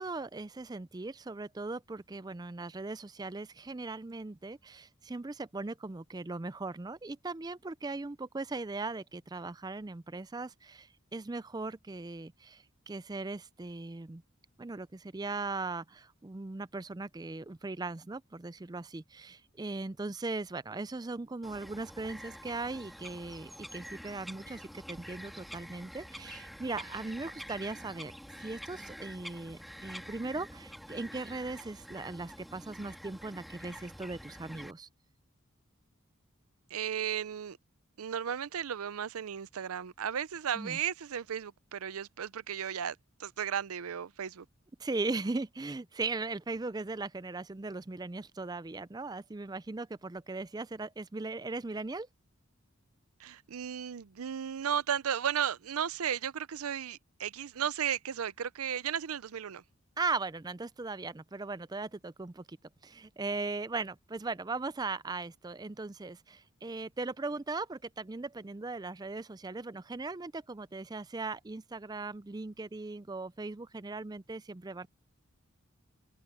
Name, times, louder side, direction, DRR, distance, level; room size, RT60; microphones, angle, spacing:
voice 1, 0.0-14.2 14.6-28.1 28.4-34.9 40.5-40.8 44.8-52.1 60.0-62.6 62.8-74.9, right 3 dB, 20° right, 0.4 m, -38 dB
Bird vocalization bird call bird song, 21.4-34.7, equal, ahead, 1.8 m, -47 dB
voice 2, 36.7-37.6 38.0-44.5 53.2-59.6, right 8 dB, 85° right, 0.5 m, -35 dB
open air
head